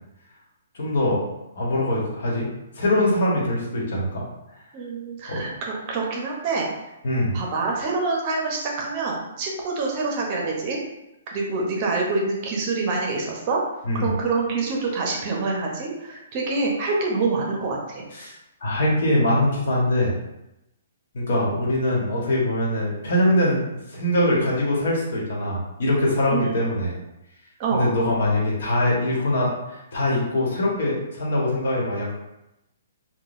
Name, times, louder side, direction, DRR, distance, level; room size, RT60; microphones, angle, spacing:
voice 1, 0.7-1.2 1.6-2.5 2.7-4.2 5.3-5.4 7.0-7.4 13.8-14.1 18.1-18.3 18.6-20.1 21.1-27.0 27.7-32.1, left 1 dB, 65° left, -4 dB, 1.2 m, -23 dB
voice 2, 4.7-6.7 7.3-10.8 11.3-13.6 13.9-18.0 26.3-26.6 27.6-27.9, right 3 dB, 35° right, -1 dB, 0.6 m, -26 dB
3.8 x 2.2 x 2.5 m, 0.91 s
hypercardioid pair, 155°, 0 cm